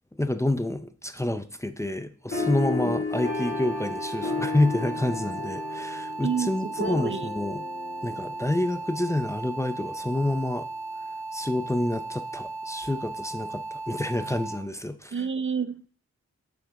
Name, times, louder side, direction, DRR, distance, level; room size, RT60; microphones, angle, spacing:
voice 1, 0.2-7.6 8.0-10.7 11.3-15.2, left 1 dB, 10° left, 9 dB, 0.5 m, -28 dB
sound 1, 2.3-9.2, left 4 dB, 45° left, 2.8 m, -33 dB
sound 2, 3.1-14.6, right 3 dB, 70° right, 1.6 m, -36 dB
voice 2, 6.2-7.3 15.1-15.9, right 6 dB, 40° right, 13 dB, 0.5 m, -29 dB
7.1 x 5.9 x 4.7 m, 0.42 s
wide cardioid pair, 75°, 30 cm